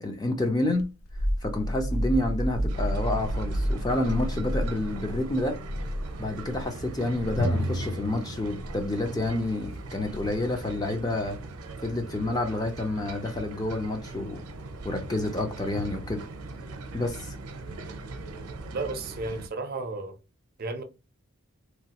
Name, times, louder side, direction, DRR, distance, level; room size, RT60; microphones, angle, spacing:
voice 1, 0.0-0.8 1.4-5.6 6.2-11.4 11.8-14.4 14.8-16.3 16.9-17.4, left 1 dB, 15° left, 0.4 m, -29 dB
sound 1, 0.8-6.6 7.1-7.4 8.6-8.9 10.0-10.5, equal, 70° left, 0.5 m, -31 dB
sound 2, 2.7-19.5, right 3 dB, 85° right, 0.6 m, -40 dB
Drum, 7.4-10.9, equal, 45° left, 1.0 m, -33 dB
voice 2, 18.7-20.2 20.6-20.8, right 3 dB, 40° right, 0.5 m, -33 dB
3.0 x 2.3 x 2.8 m
head